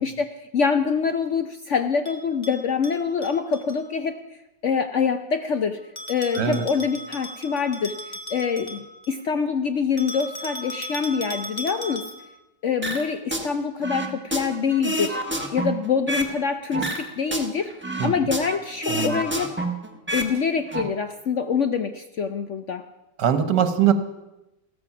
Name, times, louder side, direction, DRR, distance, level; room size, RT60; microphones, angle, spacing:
voice 1, 0.0-4.2 4.6-5.8 6.1-12.0 12.6-15.2 15.5-19.5 20.1-22.8, left 6 dB, 60° left, 8 dB, 0.8 m, -25 dB
Bell, 2.0-3.8 6.0-9.2 10.0-12.4, equal, 25° left, 1.4 m, -37 dB
voice 2, 6.3-6.7 18.0-18.1 18.9-19.2 23.2-23.9, right 8 dB, 70° right, 10 dB, 1.7 m, -21 dB
sound 1, 12.8-13.5 13.8-16.4 16.7-18.6 18.8-20.3 20.6-20.8, right 1 dB, 10° right, 1.0 m, -28 dB
15.5 x 13.5 x 6.0 m, 0.96 s
omnidirectional pair, 1.9 m